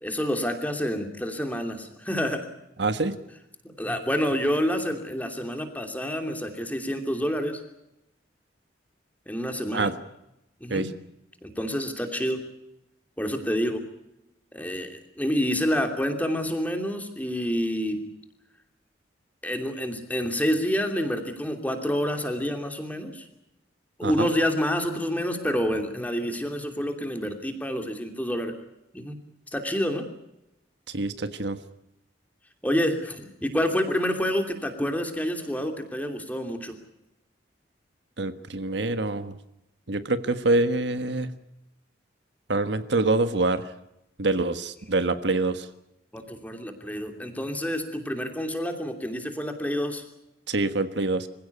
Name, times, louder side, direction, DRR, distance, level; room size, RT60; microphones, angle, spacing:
voice 1, 0.0-2.5 3.6-7.6 9.3-9.9 10.6-10.9 11.4-12.4 13.2-13.8 14.5-18.0 19.4-23.3 24.0-28.5 28.9-29.2 29.5-30.1 32.6-36.8 46.1-50.0, equal, 10° left, 5 dB, 2.8 m, -28 dB
voice 2, 2.8-3.2 9.7-9.9 10.7-10.9 24.0-24.3 30.9-31.6 38.2-39.4 39.9-41.3 42.5-43.7 44.2-45.7 50.5-51.3, right 2 dB, 65° right, 10 dB, 1.4 m, -25 dB
26.0 x 16.5 x 8.4 m, 0.88 s
head